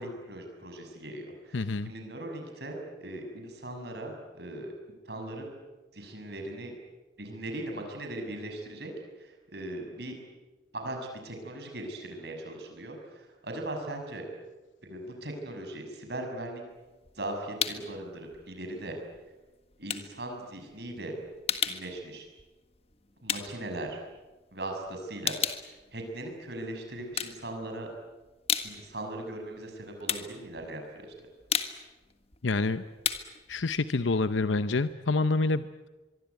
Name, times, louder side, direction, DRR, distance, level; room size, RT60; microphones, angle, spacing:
voice 1, 0.0-4.7 5.0-5.5 5.9-6.7 7.2-8.9 9.2-10.2 10.7-11.0 11.2-14.2 14.8-16.6 17.1-19.0 19.8-21.1 21.6-22.3 23.2-24.0 24.5-27.9 28.6-31.1, right 1 dB, 60° right, 3 dB, 6.5 m, -39 dB
voice 2, 1.5-1.9 32.4-32.8 33.5-35.9, left 3 dB, 80° left, 12 dB, 0.8 m, -27 dB
sound 1, 16.7-18.0 18.3-24.5 24.9-26.6 27.0-27.9 28.2-34.9, left 7 dB, 30° left, 1.6 m, -35 dB
24.5 x 23.5 x 9.5 m, 1.2 s
head